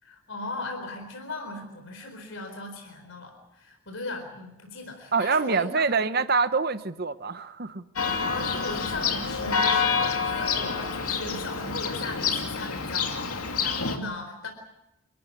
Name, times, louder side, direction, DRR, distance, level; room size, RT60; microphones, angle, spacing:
voice 1, 0.0-6.0 8.2-14.5, left 2 dB, 60° left, 3 dB, 4.3 m, -37 dB
voice 2, 5.1-7.8, right 4 dB, 45° right, 12 dB, 0.9 m, -25 dB
Church bell, 8.0-14.0, left 5 dB, 85° left, 2.7 m, -27 dB
28.5 x 14.0 x 9.7 m, 0.89 s
head